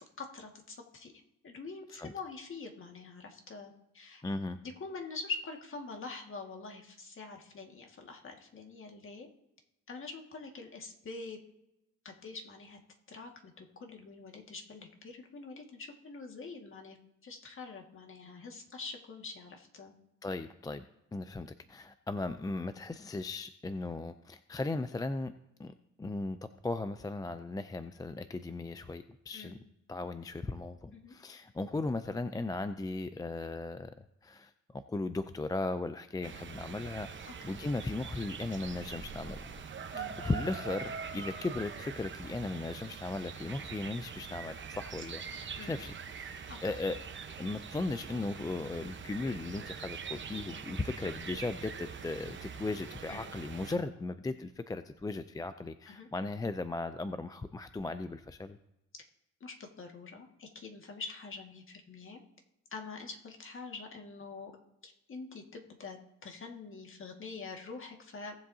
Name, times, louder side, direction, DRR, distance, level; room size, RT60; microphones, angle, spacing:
voice 1, 0.2-1.1 1.4-4.2 4.6-9.3 9.9-11.4 12.0-12.8 13.1-17.0 17.2-19.9 29.3-29.6 30.9-31.1 37.5-37.6 39.9-40.2 45.5-45.8 46.5-46.6 53.1-53.3 55.9-56.1 59.4-62.2 62.7-64.5 64.8-68.4, left 4 dB, 45° left, 2 dB, 1.9 m, -45 dB
voice 2, 4.2-4.6 20.2-20.9 21.1-25.3 25.6-29.6 29.9-39.5 40.0-45.2 45.7-47.0 47.4-58.6, left 2 dB, 15° left, 10 dB, 0.4 m, -37 dB
sound 1, 36.2-53.8, right 6 dB, 40° right, 1.0 m, -43 dB
18.0 x 7.5 x 2.8 m, 0.88 s
cardioid pair, 90°, 30 cm